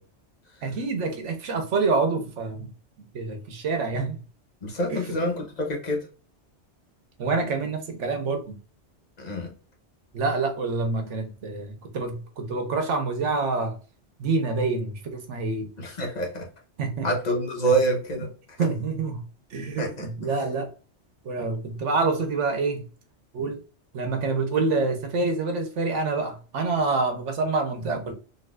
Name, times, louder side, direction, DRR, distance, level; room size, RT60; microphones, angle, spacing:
voice 1, 0.6-2.7 3.1-4.2 4.9-5.1 7.2-8.6 10.1-13.8 14.2-15.7 16.8-17.1 18.6-19.2 19.5-20.7 21.2-22.9 23.3-23.6 23.9-28.1, right 3 dB, 80° right, 1.1 m, -27 dB
voice 2, 4.6-6.1 9.2-9.5 15.8-16.5 17.0-18.6 19.8-20.3, right 1 dB, 40° left, 0.9 m, -27 dB
3.8 x 2.6 x 2.2 m
omnidirectional pair, 1.2 m